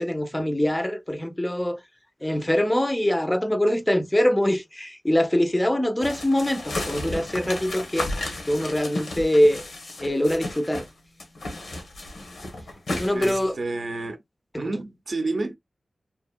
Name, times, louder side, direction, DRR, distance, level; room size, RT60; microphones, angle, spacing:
voice 1, 0.0-1.8 2.2-8.1 8.5-9.7 10.0-10.9 13.0-13.6 14.5-14.7, left 1 dB, 15° left, 0.5 m, -23 dB
sound 1, 6.0-10.9 11.2-13.5, left 2 dB, 85° left, 1.0 m, -33 dB
voice 2, 13.1-14.2 14.6-15.6, right 2 dB, 60° right, 0.5 m, -29 dB
2.8 x 2.6 x 2.2 m
wide cardioid pair, 85°, 0 cm